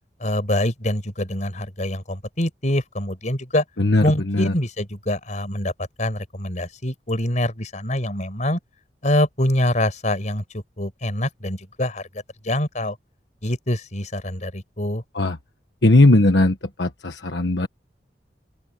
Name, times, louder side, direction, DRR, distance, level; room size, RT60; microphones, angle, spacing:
voice 1, 0.2-3.6 4.0-8.6 9.0-13.0 13.4-15.0, left 1 dB, 45° left, 5.0 m, -25 dB
voice 2, 3.8-4.5 15.1-15.4 15.8-17.7, left 2 dB, 75° left, 1.4 m, -18 dB
open air
head